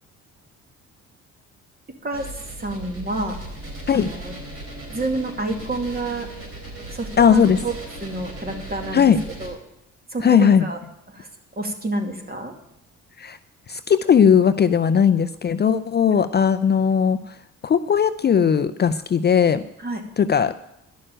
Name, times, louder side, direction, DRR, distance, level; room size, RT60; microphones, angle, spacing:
sound 1, 2.1-9.5, right 1 dB, 50° right, 3.8 m, -37 dB
voice 1, 2.6-3.4 3.9-4.3 4.9-6.3 6.9-7.7 8.0-9.0 9.4-9.6 10.1-10.8 11.1-11.3 11.6-12.5 19.8-20.0, right 2 dB, 30° right, 4 dB, 2.3 m, -28 dB
voice 2, 7.2-7.6 8.9-9.2 10.2-10.6 13.2-13.4 13.7-17.4 17.6-19.6 20.2-20.5, left 7 dB, 35° left, 11 dB, 0.5 m, -18 dB
11.5 x 6.6 x 8.8 m, 0.82 s
cardioid pair, 90°, 30 cm